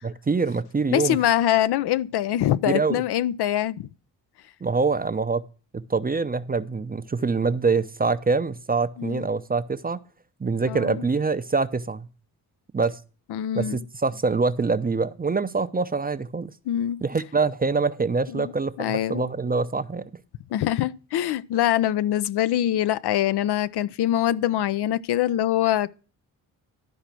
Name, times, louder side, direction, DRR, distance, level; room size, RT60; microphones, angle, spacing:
voice 1, 0.0-1.2 2.6-3.0 4.6-5.4 5.7-10.0 10.4-12.1 12.7-13.0 13.5-16.5 17.0-20.1, right 4 dB, 20° right, 0.6 m, -25 dB
voice 2, 0.9-3.9 9.0-9.3 10.7-11.1 13.3-13.8 16.7-17.0 18.3-18.5 18.8-19.2 20.5-25.9, left 12 dB, 55° left, 0.5 m, -24 dB
11.5 x 4.8 x 6.0 m
hypercardioid pair, 45°, 47 cm